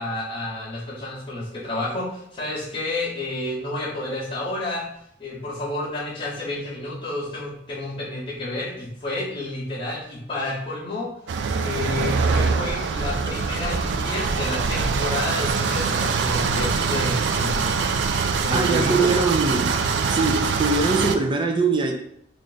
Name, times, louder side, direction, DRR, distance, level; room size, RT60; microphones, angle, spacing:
voice 1, 0.0-4.9 5.2-11.1 11.6-17.8 18.4-19.1, left 2 dB, 30° left, 0.8 m, -30 dB
sound 1, 11.3-21.2, right 5 dB, 85° right, 0.3 m, -23 dB
voice 2, 18.5-19.8 20.1-21.9, right 3 dB, 30° right, 0.5 m, -22 dB
3.3 x 2.5 x 3.9 m
head